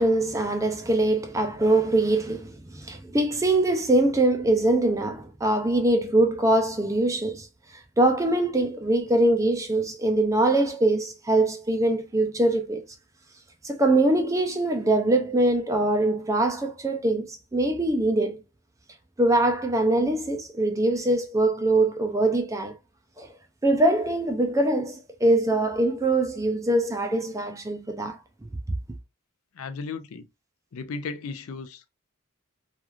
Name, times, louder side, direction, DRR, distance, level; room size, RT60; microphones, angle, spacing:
voice 1, 0.0-7.5 8.0-12.8 13.6-18.4 19.2-22.7 23.2-23.3 23.6-28.5, right 2 dB, 15° right, 0.4 m, -23 dB
voice 2, 29.5-30.3 30.7-31.9, left 4 dB, 70° left, 0.4 m, -35 dB
3.1 x 2.4 x 2.3 m
head